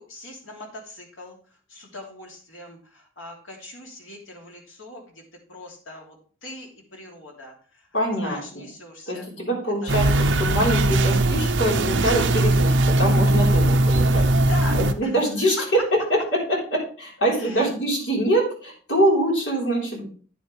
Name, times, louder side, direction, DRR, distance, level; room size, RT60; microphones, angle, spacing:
voice 1, 0.0-1.4 1.7-5.2 5.5-7.9 8.2-9.3 9.8-9.9 14.3-15.1 15.4-15.8 17.4-18.1, left 2 dB, 85° left, 0 dB, 3.0 m, -41 dB
voice 2, 7.9-8.7 9.1-14.3 14.7-15.8 16.1-16.2 16.7-20.1, right 1 dB, 60° left, -2 dB, 4.0 m, -24 dB
sound 1, 9.9-14.9, right 1 dB, 70° right, 0.8 m, -19 dB
9.6 x 9.4 x 3.3 m, 0.42 s
head